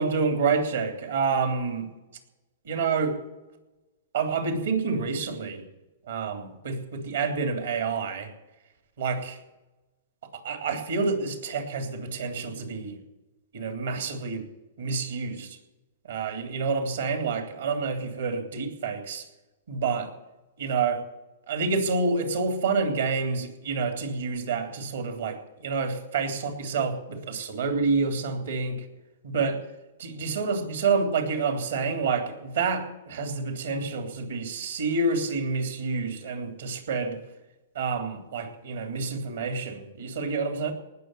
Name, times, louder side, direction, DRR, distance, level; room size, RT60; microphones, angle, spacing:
voice 1, 0.0-1.9 2.6-3.2 4.1-5.6 6.1-8.3 9.0-9.4 10.3-13.0 13.5-14.5 14.8-15.6 16.1-19.2 19.7-20.1 20.6-21.0 21.5-28.8 29.2-29.6 30.0-37.2 37.7-40.7, right 4 dB, 80° right, 5 dB, 3.2 m, -28 dB
19.0 x 6.8 x 9.2 m, 1.1 s
hypercardioid pair, 125°, 0 cm